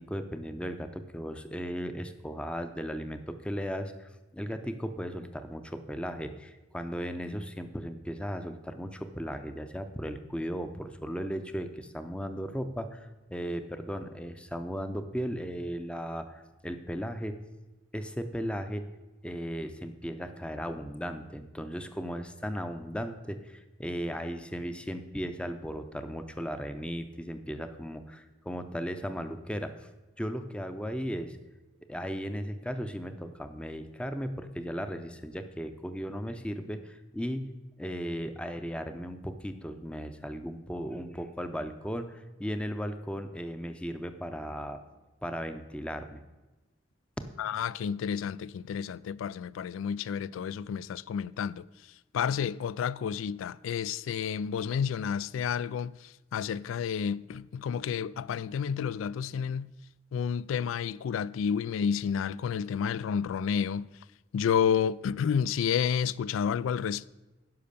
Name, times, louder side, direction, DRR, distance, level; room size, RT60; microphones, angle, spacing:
voice 1, 0.0-17.4 17.9-18.9 19.2-29.9 30.2-31.4 31.8-37.5 37.8-44.8 45.2-46.2, equal, 5° left, 0.6 m, -36 dB
voice 2, 47.4-51.6 52.1-56.0 56.3-59.7 60.1-63.9 64.3-67.1, left 7 dB, 85° left, 0.3 m, -30 dB
10.5 x 5.6 x 6.7 m
head